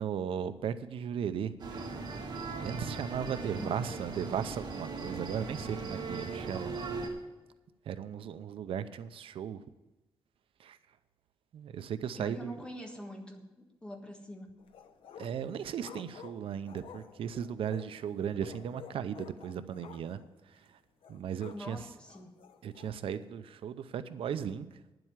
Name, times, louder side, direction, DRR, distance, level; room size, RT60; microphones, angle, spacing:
voice 1, 0.0-1.6 2.6-6.7 7.0-7.1 7.9-9.6 10.6-10.8 11.5-12.7 15.2-20.8 21.1-21.9 22.6-24.8, right 8 dB, 90° right, 12 dB, 0.6 m, -36 dB
sound 1, 1.6-7.1, right 4 dB, 50° right, 2.0 m, -39 dB
voice 2, 3.5-3.8 12.2-13.5 13.8-14.5 21.5-22.3, left 1 dB, 10° left, 2 dB, 1.5 m, -44 dB
sound 2, 14.6-15.4 15.8-18.0 18.4-20.3 20.5-20.6 21.0-21.7 22.1-22.9, left 7 dB, 80° left, 0.9 m, -51 dB
10.0 x 7.8 x 7.3 m, 1.1 s
wide cardioid pair, 175°, 9 cm